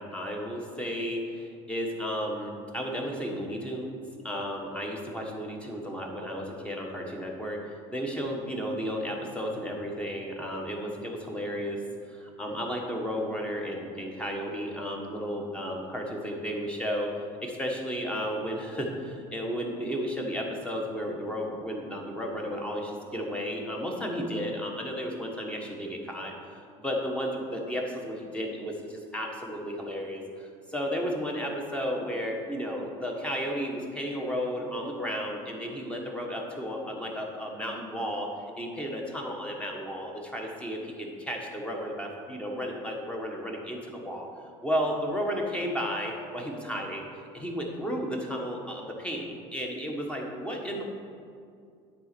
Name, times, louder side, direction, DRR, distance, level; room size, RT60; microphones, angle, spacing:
voice 1, 0.0-7.6 7.9-11.8 12.1-17.1 17.4-38.3 38.6-44.3 44.6-47.1 47.3-50.8, equal, 10° left, 0 dB, 1.3 m, -33 dB
9.5 x 4.2 x 6.8 m, 2.3 s
supercardioid pair, 125°, 15 cm